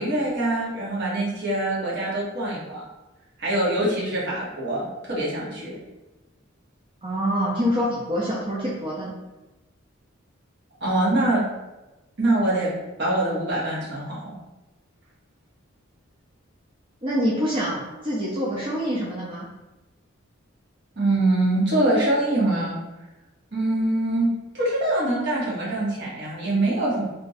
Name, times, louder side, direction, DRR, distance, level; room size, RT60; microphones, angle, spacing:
voice 1, 0.0-2.8 3.4-5.7 10.8-11.4 12.2-12.7 13.0-14.3 21.0-22.8 23.5-24.3 24.5-27.0, right 1 dB, 55° right, -6 dB, 1.0 m, -24 dB
voice 2, 7.0-9.1 17.0-19.4, equal, 25° right, -6 dB, 0.4 m, -26 dB
2.5 x 2.2 x 3.9 m, 1.1 s
head